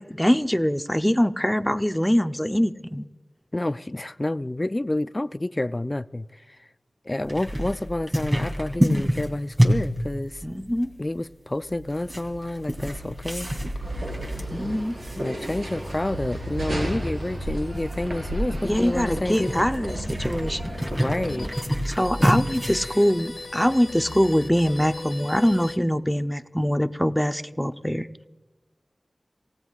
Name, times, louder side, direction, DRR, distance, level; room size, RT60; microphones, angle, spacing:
voice 1, 0.0-3.0 10.4-10.9 14.5-14.9 18.6-20.7 21.9-28.3, equal, 5° left, 0.7 m, -23 dB
voice 2, 3.5-6.3 7.1-10.4 11.0-13.5 15.2-19.7 20.9-21.5 22.2-22.3 22.7-22.9, left 1 dB, 35° left, 0.4 m, -29 dB
sound 1, 7.3-25.7, equal, 30° right, 3.1 m, -29 dB
sound 2, 12.2-25.8, left 2 dB, 65° left, 0.8 m, -42 dB
sound 3, 13.8-21.5, right 1 dB, 85° right, 4.9 m, -32 dB
27.5 x 17.5 x 2.4 m
cardioid pair, 40°, 0 cm